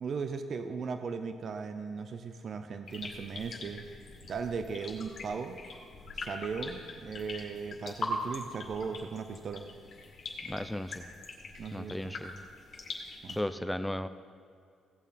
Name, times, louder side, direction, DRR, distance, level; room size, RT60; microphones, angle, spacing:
voice 1, 0.0-3.8 4.3-5.6 6.1-9.6 11.6-12.2 13.2-13.4, right 5 dB, 55° right, 8 dB, 0.7 m, -37 dB
sound 1, 2.9-13.4, left 2 dB, 50° left, 2.2 m, -42 dB
voice 2, 10.5-11.1 11.7-12.4 13.4-14.1, left 1 dB, 5° left, 10 dB, 0.6 m, -35 dB
16.5 x 7.0 x 4.3 m, 2.3 s
cardioid pair, 90°, 0 cm